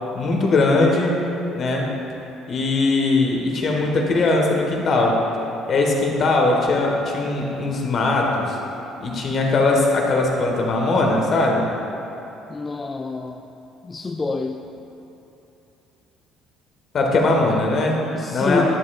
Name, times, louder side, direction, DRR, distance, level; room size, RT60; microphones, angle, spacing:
voice 1, 0.1-1.2 1.5-1.9 2.5-5.2 5.7-8.6 9.0-11.7 16.9-18.0 18.3-18.8, left 2 dB, 50° left, 0 dB, 1.4 m, -20 dB
voice 2, 12.5-13.4 13.8-14.6 18.1-18.8, left 3 dB, 25° left, 4 dB, 0.3 m, -26 dB
10.5 x 7.5 x 2.4 m, 2.9 s
supercardioid pair, 80°, 0 cm